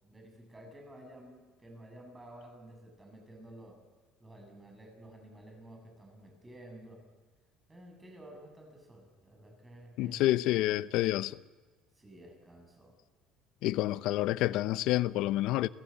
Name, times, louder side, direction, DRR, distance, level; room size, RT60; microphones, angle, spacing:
voice 1, 0.0-3.8 4.2-7.0 7.7-10.2 12.0-13.0 13.7-14.1, right 1 dB, 15° right, 7.5 m, -52 dB
voice 2, 10.0-11.4 13.6-15.7, left 16 dB, 70° left, 0.7 m, -28 dB
29.5 x 15.5 x 8.5 m
cardioid pair, 120°, 0 cm